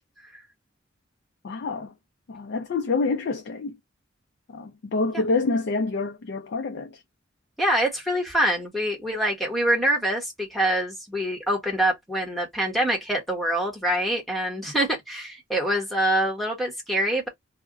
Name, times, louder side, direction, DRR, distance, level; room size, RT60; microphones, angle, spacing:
voice 1, 1.4-1.9 2.3-3.8 4.5-7.0, left 3 dB, 60° left, 0.4 m, -27 dB
voice 2, 7.6-17.3, right 1 dB, ahead, 1.0 m, -25 dB
2.3 x 2.1 x 3.5 m
head